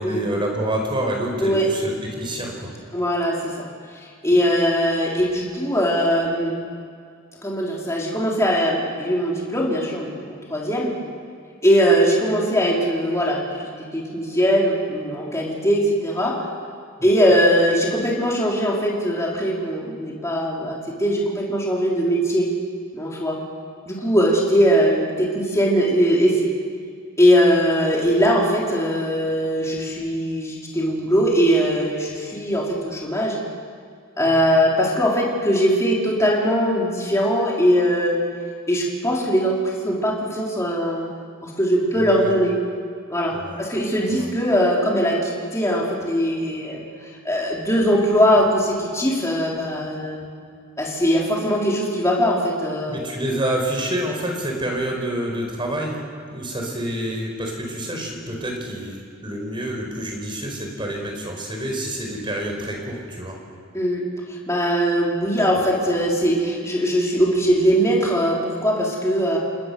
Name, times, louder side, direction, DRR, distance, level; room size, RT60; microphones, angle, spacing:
voice 1, 0.0-2.7 34.3-34.4 41.9-42.3 43.3-43.6 44.1-44.3 52.9-56.0 56.3-63.4, right 1 dB, 25° right, 1 dB, 4.8 m, -28 dB
voice 2, 2.9-3.7 4.2-6.6 7.4-10.9 11.6-16.4 17.0-22.5 22.9-23.4 23.9-26.5 27.2-33.4 34.2-38.2 38.7-41.1 41.4-42.6 43.1-46.8 47.2-50.2 50.8-53.0 63.7-69.4, equal, 15° left, -3 dB, 4.0 m, -20 dB
29.0 x 20.0 x 6.9 m, 2.2 s
head